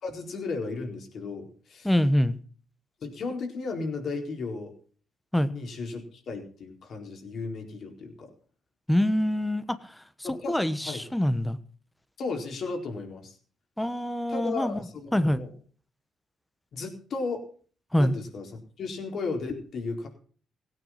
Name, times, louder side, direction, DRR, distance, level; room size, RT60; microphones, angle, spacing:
voice 1, 0.0-1.9 3.0-4.7 5.5-8.3 10.2-10.6 10.8-11.0 12.2-13.4 14.3-15.5 16.7-17.4 18.0-18.5 18.8-20.1, left 3 dB, 60° left, 3 dB, 4.2 m, -34 dB
voice 2, 1.8-2.4 5.3-5.5 8.9-9.9 10.5-11.6 13.8-14.8 15.1-15.4 17.9-18.1, left 1 dB, 5° left, 13 dB, 1.2 m, -25 dB
17.0 x 9.2 x 5.9 m, 0.43 s
cardioid pair, 90°, 0 cm